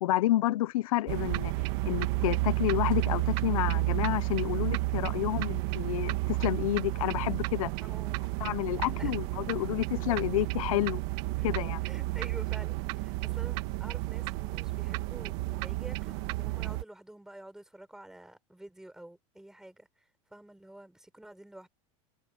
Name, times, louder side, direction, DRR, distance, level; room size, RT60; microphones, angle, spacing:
voice 1, 0.0-1.5 1.8-7.7 8.4-11.0 11.4-11.8, left 15 dB, 80° left, 0.8 m, -30 dB
sound 1, 1.1-16.8, right 20 dB, 55° right, 1.6 m, -31 dB
voice 2, 7.8-8.2 9.0-9.1 11.4-11.5 11.8-19.9 20.3-21.7, right 1 dB, 5° right, 6.4 m, -49 dB
supercardioid pair, 155°, 18 cm